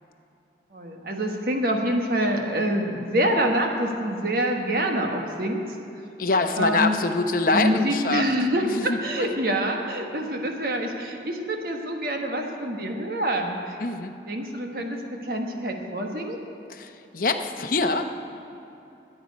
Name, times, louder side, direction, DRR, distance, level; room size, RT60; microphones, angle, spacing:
voice 1, 0.7-5.6 6.5-7.0 7.5-13.8 14.3-16.4, right 1 dB, 55° right, 2 dB, 1.3 m, -26 dB
voice 2, 6.2-8.2 8.6-9.3 13.8-14.1 16.7-18.1, left 3 dB, 50° left, 6 dB, 0.8 m, -25 dB
22.0 x 8.8 x 5.3 m, 2.8 s
head